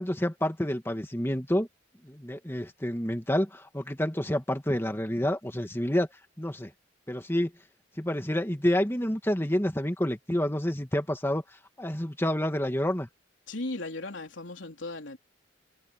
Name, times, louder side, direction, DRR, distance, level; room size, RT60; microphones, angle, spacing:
voice 1, 0.0-1.7 2.0-6.1 6.4-6.7 7.1-7.5 8.0-11.4 11.8-13.1, left 1 dB, 15° left, 2.2 m, -28 dB
voice 2, 13.5-15.2, left 2 dB, 80° left, 3.4 m, -36 dB
head